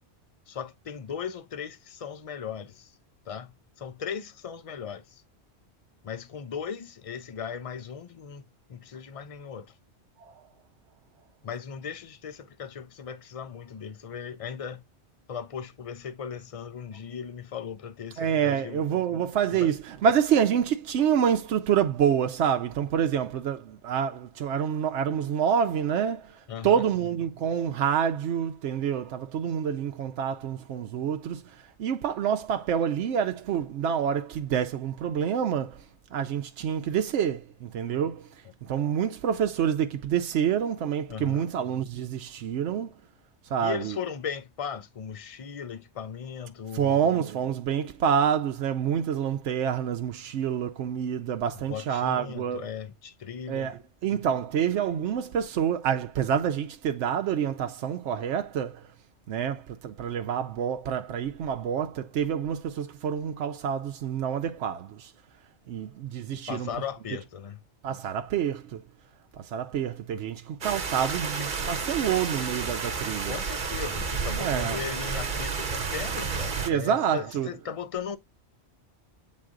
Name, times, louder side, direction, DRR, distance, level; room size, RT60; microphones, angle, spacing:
voice 1, 0.5-2.9 3.3-5.2 6.0-8.4 8.7-9.7 11.4-14.8 15.3-18.9 19.5-19.7 26.5-26.8 41.1-41.5 43.6-47.0 51.7-53.7 66.5-67.6 71.3-71.5 73.3-78.2, left 7 dB, 40° left, 0.6 m, -37 dB
voice 2, 18.2-26.3 26.6-31.4 31.8-35.8 36.1-38.2 38.6-42.9 43.5-43.9 46.7-52.6 53.5-58.8 59.3-65.1 65.7-66.7 67.8-68.8 69.4-73.4 74.4-74.8 76.6-77.5, right 8 dB, 80° right, 0.9 m, -27 dB
sound 1, 70.6-76.7, right 5 dB, 45° right, 1.1 m, -31 dB
7.7 x 4.0 x 3.7 m
omnidirectional pair, 1.2 m